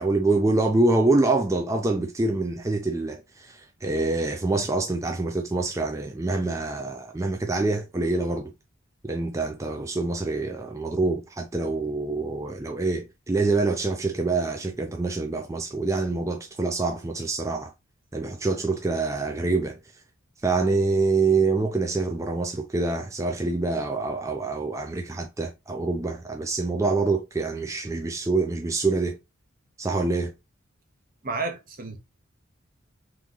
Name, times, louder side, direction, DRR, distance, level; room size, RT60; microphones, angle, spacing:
voice 1, 0.0-8.5 9.0-17.7 18.1-19.8 20.4-29.2 29.8-30.3, right 3 dB, 15° right, 0.4 m, -26 dB
voice 2, 31.2-32.0, right 3 dB, 45° right, 0.9 m, -31 dB
3.5 x 3.0 x 3.7 m
head